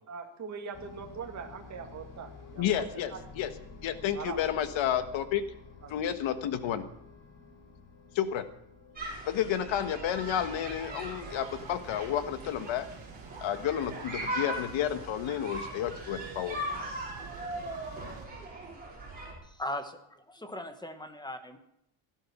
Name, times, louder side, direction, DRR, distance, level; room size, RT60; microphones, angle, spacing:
voice 1, 0.1-2.8 3.1-3.2 4.1-4.4 5.8-5.9, right 6 dB, 35° right, 2 dB, 2.0 m, -41 dB
sound 1, 0.7-17.4, left 4 dB, 40° left, 3.4 m, -53 dB
voice 2, 2.6-3.5 3.8-5.4 5.9-6.8 8.1-8.5 9.3-12.9 13.4-16.6, left 10 dB, 65° left, 11 dB, 1.4 m, -31 dB
sound 2, 9.0-19.3, right 1 dB, 20° right, 5.3 m, -40 dB
sound 3, 10.2-18.2, right 6 dB, 70° right, 2.5 m, -49 dB
voice 3, 19.4-21.6, left 1 dB, 10° left, 8 dB, 1.2 m, -39 dB
17.0 x 12.0 x 6.0 m, 0.78 s
cardioid pair, 170°, 49 cm